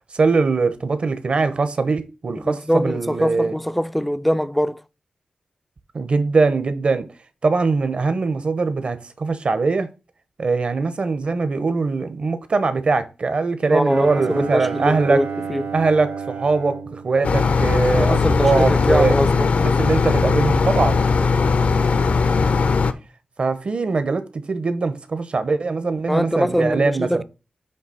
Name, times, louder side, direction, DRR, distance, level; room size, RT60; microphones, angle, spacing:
voice 1, 0.1-3.5 5.9-7.1 7.4-9.9 10.4-15.2 15.7-19.1 19.8-21.1 23.4-27.2, right 4 dB, 50° right, 0.9 m, -21 dB
voice 2, 2.3-4.8 13.7-15.7 17.9-19.5 26.1-27.2, equal, ahead, 0.4 m, -23 dB
Bowed string instrument, 13.9-18.2, right 6 dB, 85° right, 0.8 m, -32 dB
sound 1, 17.2-22.9, left 4 dB, 65° left, 0.7 m, -18 dB
7.9 x 3.3 x 5.7 m
wide cardioid pair, 125°, 3 cm